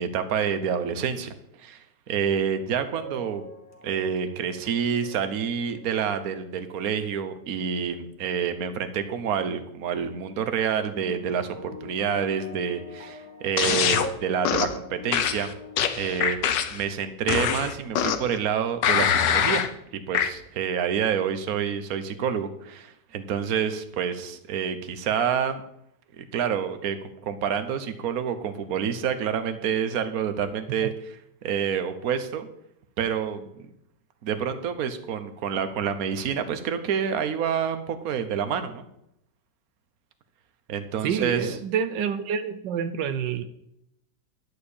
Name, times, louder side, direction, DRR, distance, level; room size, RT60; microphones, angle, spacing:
voice 1, 0.0-1.3 1.6-3.4 3.8-15.5 16.0-19.6 19.9-25.6 26.2-32.5 33.0-33.5 34.2-38.8 40.7-41.6, right 7 dB, 60° right, 9 dB, 1.4 m, -28 dB
sound 1, 3.0-7.3 7.8-8.1 10.9-16.3, left 1 dB, 10° left, 1.4 m, -43 dB
sound 2, 13.6-14.1 14.4-14.8 15.1-16.8 17.3-18.3 18.8-19.7 20.1-20.3, left 8 dB, 80° left, 1.5 m, -24 dB
voice 2, 41.0-43.4, right 7 dB, 80° right, 10 dB, 1.4 m, -28 dB
11.5 x 5.0 x 8.5 m, 0.77 s
omnidirectional pair, 1.9 m